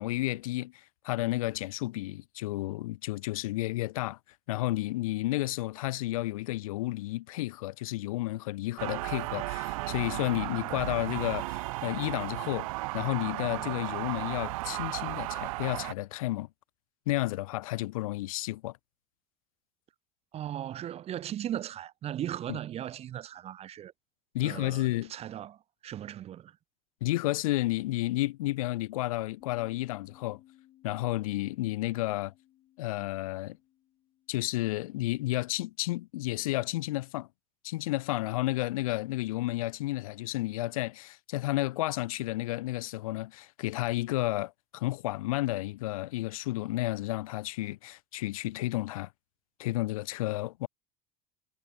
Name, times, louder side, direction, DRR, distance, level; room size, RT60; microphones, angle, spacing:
voice 1, 0.0-4.2 4.5-12.7 12.9-16.5 17.1-18.8 22.5-22.6 24.3-25.1 27.0-30.4 30.8-32.3 32.8-33.6 34.3-37.3 37.6-49.1 49.6-50.7, left 18 dB, 75° left, 0.5 m, -32 dB
sound 1, 8.8-15.9, right 21 dB, 70° right, 1.5 m, -35 dB
voice 2, 20.3-23.9 24.4-25.6 25.8-26.5, right 11 dB, 35° right, 0.5 m, -37 dB
Bass guitar, 29.4-35.7, left 13 dB, 50° left, 5.5 m, -61 dB
hypercardioid pair, 70°, 18 cm